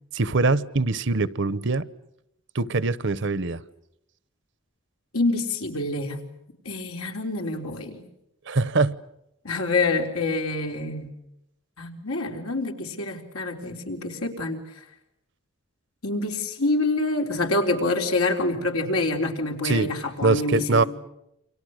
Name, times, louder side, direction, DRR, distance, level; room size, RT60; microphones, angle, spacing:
voice 1, 0.1-1.9 2.5-3.6 8.5-9.0 19.6-19.9 20.2-20.8, right 3 dB, 55° right, 0.9 m, -23 dB
voice 2, 5.1-6.2 6.6-8.0 9.4-11.1 11.8-14.6 16.0-20.9, left 2 dB, 90° left, 4.0 m, -26 dB
29.5 x 25.0 x 6.5 m
head